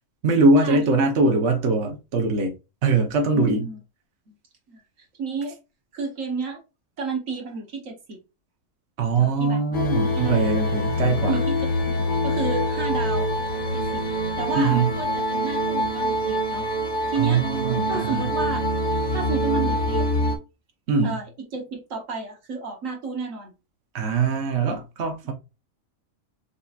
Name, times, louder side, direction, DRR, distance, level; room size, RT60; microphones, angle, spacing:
voice 1, 0.2-2.5 2.8-3.7 9.0-11.4 14.6-14.9 17.2-18.3 20.9-21.2 23.9-25.3, right 3 dB, 60° right, 1.2 m, -22 dB
voice 2, 3.3-3.8 4.7-4.8 5.2-5.6 5.9-6.6 7.0-8.2 9.2-9.6 10.2-10.7 11.3-11.6 12.2-13.3 13.7-14.0 14.4-16.7 17.1-17.4 17.9-18.6 19.1-20.1 21.0-23.5 24.5-24.6 25.2-25.3, right 4 dB, 75° right, 1.4 m, -31 dB
sound 1, 9.7-20.4, equal, 65° left, 1.5 m, -25 dB
6.6 x 2.8 x 2.4 m
omnidirectional pair, 1.4 m